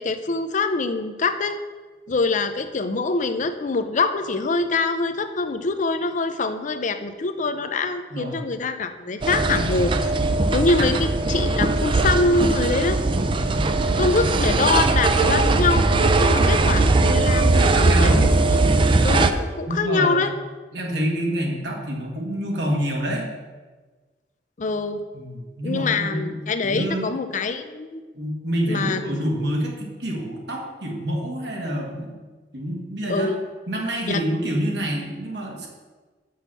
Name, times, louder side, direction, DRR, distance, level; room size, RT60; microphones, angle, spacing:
voice 1, 0.0-1.6 2.1-10.1 10.5-13.0 14.0-18.7 19.0-20.3 24.6-25.0 25.6-28.0 28.7-29.0 33.1-33.4 34.1-34.2, left 3 dB, 45° left, 9 dB, 0.5 m, -24 dB
sound 1, 9.2-19.3, right 3 dB, 30° right, 0.4 m, -19 dB
voice 2, 13.5-14.3 17.5-18.3 19.7-20.2 20.7-23.3 25.1-27.1 28.1-32.2 32.5-33.3 33.7-35.7, equal, 65° right, 0 dB, 1.8 m, -27 dB
6.3 x 5.7 x 6.9 m, 1.3 s
head